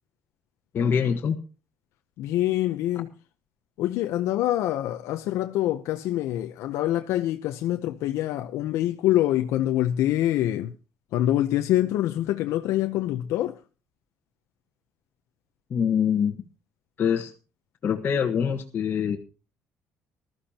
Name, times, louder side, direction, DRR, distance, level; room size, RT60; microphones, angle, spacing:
voice 1, 0.7-1.4 15.7-16.4 17.0-17.3 17.8-19.2, left 7 dB, 45° left, 1.4 m, -24 dB
voice 2, 2.2-3.1 3.8-10.7 11.1-13.6, left 13 dB, 80° left, 0.7 m, -25 dB
19.5 x 13.5 x 2.9 m
cardioid pair, 125°, 5 cm